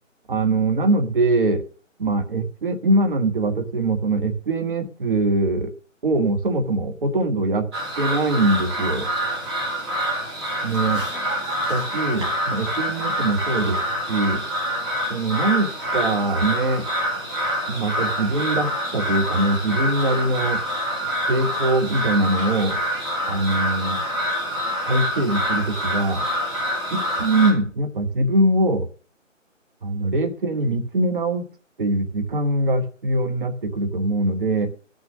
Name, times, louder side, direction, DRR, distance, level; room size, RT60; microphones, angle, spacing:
voice 1, 0.3-1.6 2.0-5.7 6.0-7.6 8.0-9.1 10.6-11.0 11.7-13.8 14.1-14.4 15.1-16.9 17.7-20.6 21.3-22.8 23.2-24.0 24.9-26.2 26.9-28.9 29.8-31.4 31.8-34.7, right 2 dB, 40° right, 7 dB, 1.3 m, -22 dB
sound 1, 7.7-27.5, equal, 20° right, 3.0 m, -26 dB
12.5 x 6.6 x 6.2 m, 0.41 s
figure-of-eight pair, 165°, 39 cm